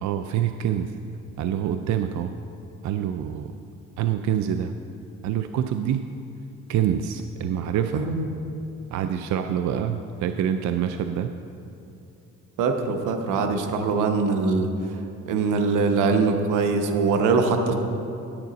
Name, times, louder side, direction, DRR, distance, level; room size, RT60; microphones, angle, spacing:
voice 1, 0.0-1.0 1.4-2.3 2.8-3.5 4.0-4.7 5.2-6.1 6.7-8.1 8.9-11.3, right 9 dB, 70° right, 8 dB, 0.4 m, -26 dB
voice 2, 7.9-8.2 12.6-14.7 15.3-17.7, right 4 dB, 90° right, 5 dB, 0.9 m, -22 dB
9.7 x 9.1 x 4.0 m, 2.7 s
cardioid pair, 90°, 30 cm